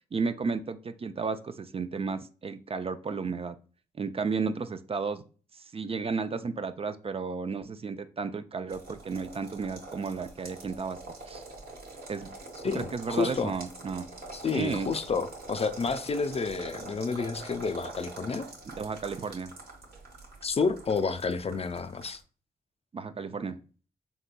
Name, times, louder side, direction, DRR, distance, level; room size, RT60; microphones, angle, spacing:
voice 1, 0.1-3.6 3.9-5.2 5.5-11.0 11.3-11.4 12.1-12.3 12.7-14.1 14.5-14.9 18.7-19.5 22.9-23.6, right 5 dB, 35° right, 0.4 m, -33 dB
sound 1, 8.7-22.2, right 2 dB, 75° right, 1.1 m, -45 dB
voice 2, 12.6-13.5 14.3-18.5 20.4-22.2, left 4 dB, 40° left, 0.4 m, -30 dB
3.8 x 2.8 x 2.2 m
supercardioid pair, 40°, 16 cm